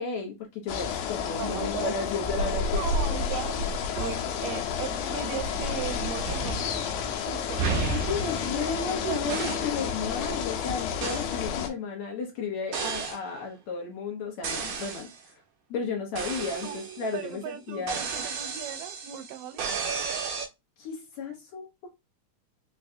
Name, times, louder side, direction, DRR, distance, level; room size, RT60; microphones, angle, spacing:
voice 1, 0.0-2.8 7.8-15.3 15.7-18.0 20.8-21.9, left 4 dB, 70° left, 1.9 m, -34 dB
sound 1, 0.7-11.7, left 6 dB, 90° left, 2.5 m, -30 dB
voice 2, 1.4-1.9 2.8-7.8 9.0-9.2 16.6-16.8 17.1-19.6, right 10 dB, 85° right, 2.2 m, -37 dB
sound 2, 6.2-7.2 7.6-8.9 9.3-9.7 11.0-11.3 12.7-13.3 14.4-15.2 16.2-17.3 17.9-20.5, right 5 dB, 60° right, 1.8 m, -33 dB
5.5 x 2.3 x 2.5 m
omnidirectional pair, 3.8 m